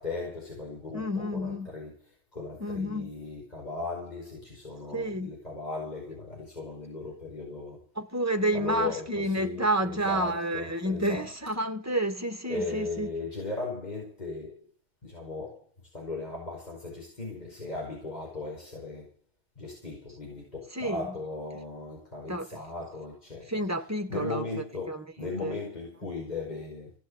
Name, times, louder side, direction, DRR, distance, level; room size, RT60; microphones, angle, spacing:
voice 1, 0.0-1.9 2.3-7.9 8.5-11.3 12.5-14.7 15.0-15.7 15.9-19.1 19.6-23.5 24.1-26.9, left 3 dB, 40° left, 5.3 m, -37 dB
voice 2, 0.9-1.7 2.6-3.1 4.9-5.3 8.0-13.1 20.7-21.0 22.3-22.6 23.5-25.6, right 1 dB, 15° right, 1.7 m, -30 dB
16.5 x 8.7 x 8.1 m
omnidirectional pair, 1.1 m